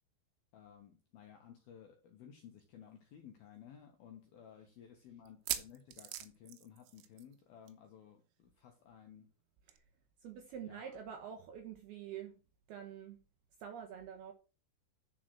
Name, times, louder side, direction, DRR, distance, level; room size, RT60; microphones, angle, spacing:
voice 1, 0.5-9.3 10.6-11.0, left 8 dB, 70° left, 2.3 m, -56 dB
sound 1, 2.6-2.7 3.0-3.1 3.7-3.8 5.3-7.4 7.7-7.9 8.1-8.2 9.7-9.8, right 13 dB, 90° right, 3.5 m, -42 dB
voice 2, 10.2-12.3 12.7-13.2 13.6-14.3, right 8 dB, 70° right, 2.5 m, -46 dB
10.5 x 5.1 x 6.1 m
omnidirectional pair, 5.8 m